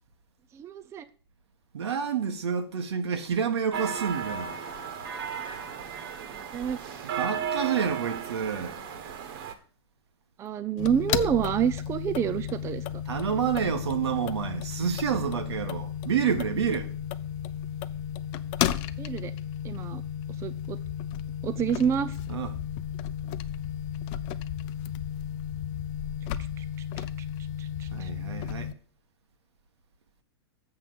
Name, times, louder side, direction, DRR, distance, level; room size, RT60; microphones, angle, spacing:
voice 1, 0.5-1.1 6.3-6.8 10.4-13.0 19.0-19.3 19.6-20.0 20.4-20.8 21.4-22.2 26.6-26.7 27.0-27.1 27.6-28.1, right 8 dB, 20° right, 0.5 m, -28 dB
voice 2, 1.7-4.6 7.1-8.8 13.1-16.9 22.3-22.5 27.9-28.7, right 7 dB, 80° right, 1.6 m, -29 dB
sound 1, 3.7-9.5, right 7 dB, 60° right, 1.7 m, -35 dB
sound 2, 10.8-28.7, left 10 dB, 40° left, 0.6 m, -33 dB
7.6 x 5.9 x 7.7 m
hypercardioid pair, 130°, 14 cm